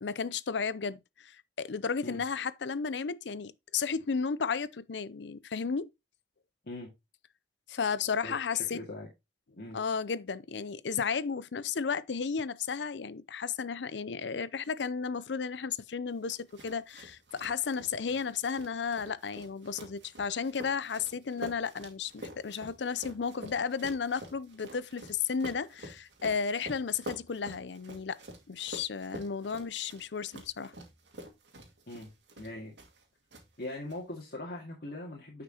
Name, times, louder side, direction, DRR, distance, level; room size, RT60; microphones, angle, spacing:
voice 1, 0.0-5.9 7.7-8.8 9.7-28.2 28.5-30.7, left 5 dB, 75° left, 0.6 m, -33 dB
voice 2, 8.7-9.1 9.6-9.8 31.9-32.1 32.4-32.7 33.6-35.4, left 1 dB, 60° left, 2.1 m, -41 dB
sound 1, 16.3-33.0 33.3-34.0, right 1 dB, 85° right, 2.4 m, -48 dB
9.7 x 5.9 x 2.9 m
head